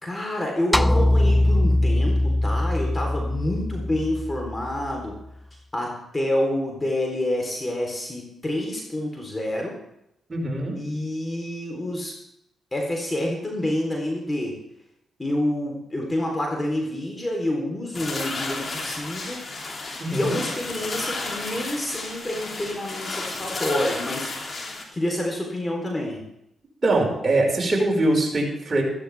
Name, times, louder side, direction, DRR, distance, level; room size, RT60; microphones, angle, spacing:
voice 1, 0.0-5.2 5.7-9.8 10.7-12.1 12.7-14.6 15.2-19.4 20.1-26.2, left 1 dB, 25° left, 0 dB, 3.9 m, -28 dB
sound 1, 0.7-5.1, left 1 dB, 5° left, 0.4 m, -22 dB
voice 2, 10.3-10.8 20.0-20.4 26.8-28.8, right 2 dB, 35° right, -1 dB, 5.4 m, -22 dB
sound 2, 17.9-24.8, left 3 dB, 45° left, 3.3 m, -32 dB
14.5 x 14.0 x 3.6 m, 0.80 s
supercardioid pair, 45°, 0 cm